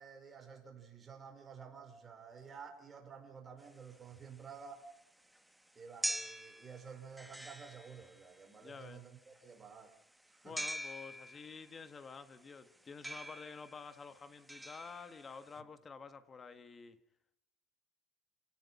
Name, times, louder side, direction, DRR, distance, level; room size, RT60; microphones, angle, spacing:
voice 1, 0.0-4.8 5.7-9.9 10.3-10.6, right 6 dB, 20° right, 5.0 m, -52 dB
sound 1, 3.6-15.6, equal, 5° right, 1.3 m, -45 dB
voice 2, 8.6-9.0 10.4-17.0, left 5 dB, 25° left, 1.5 m, -50 dB
28.0 x 18.5 x 5.5 m
cardioid pair, 145°, 0 cm